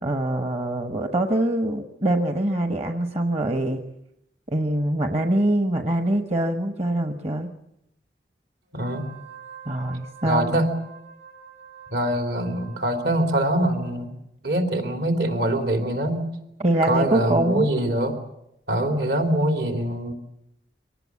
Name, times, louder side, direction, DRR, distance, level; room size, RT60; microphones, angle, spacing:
voice 1, 0.0-3.9 4.5-7.5 9.7-10.6 16.6-17.7, right 1 dB, 35° right, 6 dB, 1.1 m, -24 dB
voice 2, 8.7-9.1 10.2-10.7 11.9-14.2 14.4-16.3 16.9-18.2 18.7-20.1, right 1 dB, 70° right, 4 dB, 3.2 m, -24 dB
Wind instrument woodwind instrument, 8.7-14.0, right 6 dB, 90° right, 4.3 m, -46 dB
24.0 x 18.5 x 8.4 m, 0.82 s
head